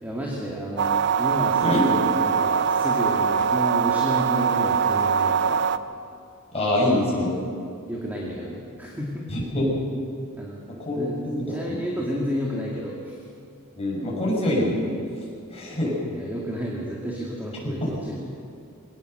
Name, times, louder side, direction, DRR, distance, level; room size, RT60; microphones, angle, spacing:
voice 1, 0.0-5.6 7.9-9.4 10.4-10.6 10.9-13.2 16.1-18.4, equal, 10° right, -3 dB, 2.1 m, -31 dB
sound 1, 0.8-5.8, right 6 dB, 50° right, 0.6 m, -22 dB
voice 2, 6.5-7.3 9.3-9.8 10.8-11.8 13.8-14.8 15.5-15.9 17.8-17.9, left 1 dB, 25° left, -4 dB, 6.4 m, -25 dB
22.0 x 18.0 x 6.7 m, 2.4 s
head